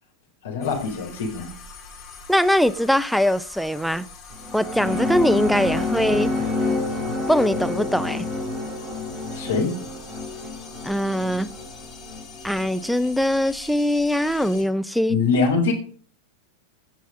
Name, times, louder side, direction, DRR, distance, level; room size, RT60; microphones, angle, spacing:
voice 1, 0.4-1.5 9.3-9.7 15.1-15.7, left 4 dB, 60° left, 4.2 m, -23 dB
sound 1, 0.6-14.6, left 5 dB, 25° left, 4.4 m, -44 dB
voice 2, 2.3-4.1 4.5-6.3 7.3-8.3 10.8-11.5 12.4-15.2, equal, ahead, 0.5 m, -21 dB
sound 2, 4.3-13.0, left 2 dB, 20° right, 3.8 m, -28 dB
17.0 x 6.3 x 5.4 m
figure-of-eight pair, 90°, 0 cm